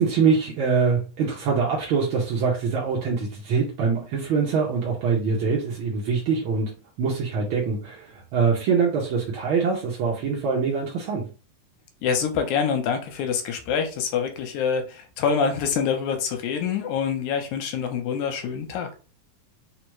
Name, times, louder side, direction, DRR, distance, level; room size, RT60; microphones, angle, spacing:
voice 1, 0.0-6.7 7.0-11.3, right 5 dB, 80° right, -2 dB, 1.1 m, -24 dB
voice 2, 12.0-18.9, left 6 dB, 75° left, 6 dB, 2.1 m, -26 dB
4.9 x 2.1 x 4.6 m, 0.35 s
omnidirectional pair, 3.6 m